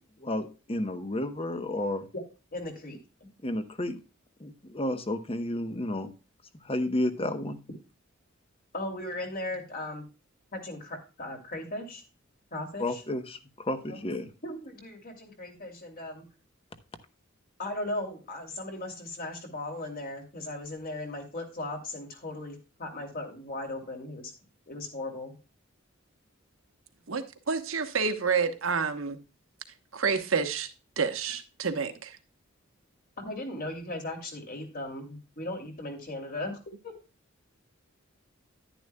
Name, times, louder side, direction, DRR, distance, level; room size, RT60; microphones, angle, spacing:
voice 1, 0.2-2.0 3.4-4.0 4.4-6.1 6.7-7.6 12.8-14.3, left 1 dB, 30° left, 1.0 m, -31 dB
voice 2, 2.5-3.3 8.7-10.1 10.5-12.0 12.5-13.0 13.9-14.0 14.4-16.3 17.6-24.3 24.7-25.4 33.2-36.9, left 2 dB, 45° left, 2.8 m, -37 dB
voice 3, 27.1-29.2 29.9-30.7 31.0-32.2, right 5 dB, 75° right, 1.2 m, -29 dB
10.5 x 10.0 x 2.3 m
head